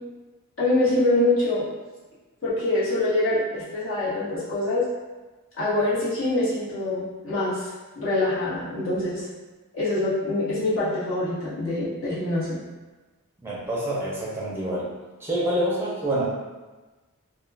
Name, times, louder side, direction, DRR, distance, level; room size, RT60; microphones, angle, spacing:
voice 1, 0.6-1.6 2.4-4.9 5.6-9.3 9.7-12.6, left 2 dB, 65° left, -10 dB, 1.1 m, -25 dB
voice 2, 13.4-14.9 15.2-16.3, right 1 dB, 10° right, -7 dB, 0.5 m, -26 dB
2.3 x 2.2 x 3.3 m, 1.2 s
head